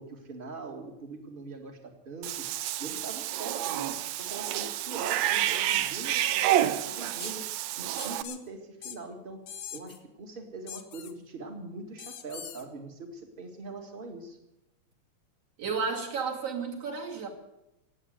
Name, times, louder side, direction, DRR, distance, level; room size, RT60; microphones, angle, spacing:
voice 1, 0.0-2.5 2.8-7.5 7.8-9.4 9.7-14.4, right 3 dB, 20° right, 4 dB, 1.6 m, -42 dB
Cat / Bathtub (filling or washing), 2.2-8.2, right 12 dB, 75° right, 1.8 m, -29 dB
sound 1, 7.2-7.3 8.0-8.4 8.8-9.0 9.5-10.0 10.7-11.1 12.0-12.6, left 9 dB, 60° left, 1.4 m, -42 dB
voice 2, 15.6-17.3, right 5 dB, 55° right, -1 dB, 3.5 m, -32 dB
18.0 x 8.3 x 9.1 m, 0.93 s
omnidirectional pair, 3.3 m